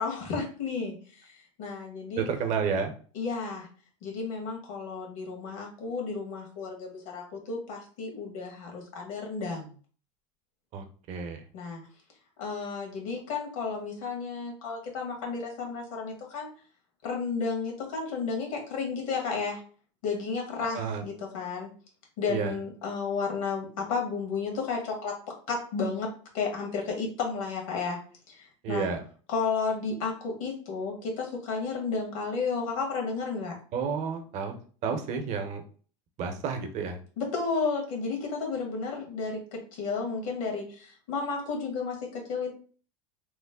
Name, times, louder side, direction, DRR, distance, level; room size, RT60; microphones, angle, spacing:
voice 1, 0.0-2.3 3.1-3.7 4.0-9.7 11.5-11.8 12.4-16.5 17.0-19.6 20.0-21.7 22.2-25.1 25.5-26.1 26.3-28.0 28.3-28.9 29.3-33.5 37.2-42.5, left 4 dB, 75° left, 1 dB, 1.5 m, -32 dB
voice 2, 2.2-2.9 10.7-11.5 20.7-21.0 22.3-22.6 28.6-29.0 33.7-34.5 34.8-35.6 36.2-37.0, right 6 dB, 40° right, 6 dB, 0.6 m, -31 dB
3.1 x 2.1 x 3.4 m, 0.41 s
supercardioid pair, 130°, 17 cm